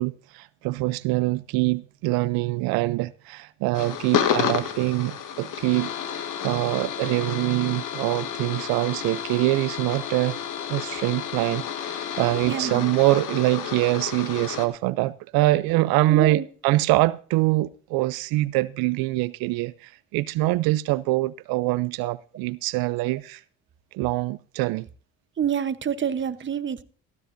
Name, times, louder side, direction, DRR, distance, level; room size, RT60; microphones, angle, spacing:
voice 1, 0.0-10.4 10.7-23.4 23.9-24.9, right 19 dB, 85° right, 0.5 m, -24 dB
sound 1, 3.7-14.7, left 8 dB, 60° left, 1.5 m, -31 dB
voice 2, 12.5-12.9 16.1-16.4 22.0-22.1 25.4-26.8, right 8 dB, 35° right, 0.9 m, -27 dB
14.5 x 13.0 x 2.6 m
supercardioid pair, 80°, 35 cm